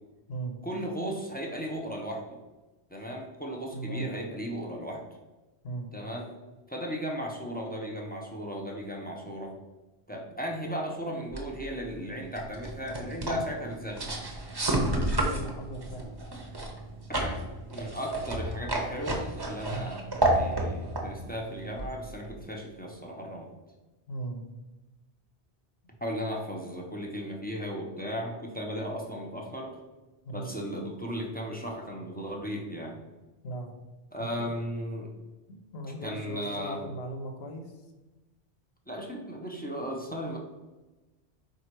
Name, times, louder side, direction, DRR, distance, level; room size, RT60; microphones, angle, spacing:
voice 1, 0.6-2.4 2.9-5.0 5.9-6.3 6.7-9.5 10.1-14.1 17.2-17.4 17.7-23.5 26.0-29.8 30.3-33.0 34.1-35.1 36.0-36.8 38.9-40.4, equal, 15° left, -1 dB, 0.3 m, -36 dB
voice 2, 3.7-4.1 5.6-5.9 15.1-16.1 19.7-19.9 24.1-24.4 30.2-30.5 33.4-33.7 34.2-34.5 35.5-37.8, right 2 dB, 70° left, 4 dB, 1.0 m, -38 dB
sound 1, 11.3-22.4, right 1 dB, 25° right, 0.6 m, -32 dB
4.3 x 2.7 x 4.4 m, 1.1 s
omnidirectional pair, 1.1 m